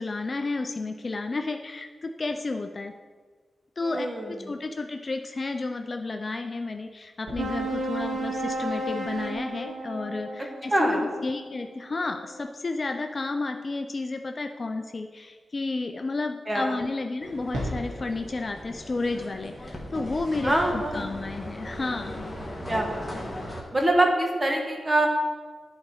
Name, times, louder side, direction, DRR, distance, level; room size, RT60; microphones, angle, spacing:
voice 1, 0.0-2.9 3.8-22.2, left 3 dB, 35° left, 5 dB, 0.4 m, -32 dB
voice 2, 3.8-4.3 10.4-11.0 16.5-16.8 20.4-21.1 22.7-23.2 23.7-25.1, right 1 dB, 20° right, 2 dB, 1.2 m, -25 dB
sound 1, 4.6-9.6 9.8-10.2 17.3-20.2, equal, 90° right, 2.1 m, -41 dB
sound 2, 7.4-12.2, right 1 dB, 70° right, 1.1 m, -33 dB
sound 3, 17.2-23.6, left 1 dB, 5° left, 1.3 m, -38 dB
11.0 x 4.2 x 4.7 m, 1.5 s
wide cardioid pair, 115°, 0 cm